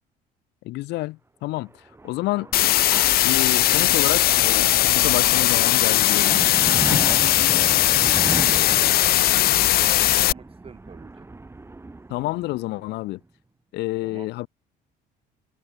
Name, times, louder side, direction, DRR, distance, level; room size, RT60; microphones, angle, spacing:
voice 1, 0.6-1.7 2.0-2.5 3.2-7.0 9.1-9.2 12.1-13.2 13.7-14.5, left 19 dB, 85° left, 1.1 m, -29 dB
sound 1, 1.7-13.0, right 2 dB, 15° right, 3.4 m, -36 dB
sound 2, 2.5-10.3, left 14 dB, 65° left, 0.7 m, -19 dB
voice 2, 7.2-8.0 8.5-11.3 14.0-14.3, right 6 dB, 35° right, 5.1 m, -44 dB
cardioid pair, 110°, 17 cm